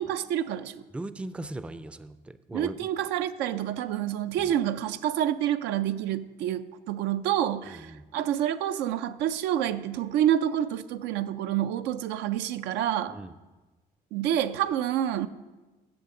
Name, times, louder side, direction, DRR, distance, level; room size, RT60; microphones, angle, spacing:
voice 1, 0.0-0.8 2.5-13.2 14.1-15.3, right 11 dB, 85° right, 10 dB, 0.5 m, -28 dB
voice 2, 0.9-2.9 4.4-4.5 7.7-8.0 13.1-13.3, right 2 dB, 5° right, 13 dB, 0.4 m, -39 dB
14.0 x 7.5 x 3.8 m, 1.2 s
cardioid pair, 110°, 17 cm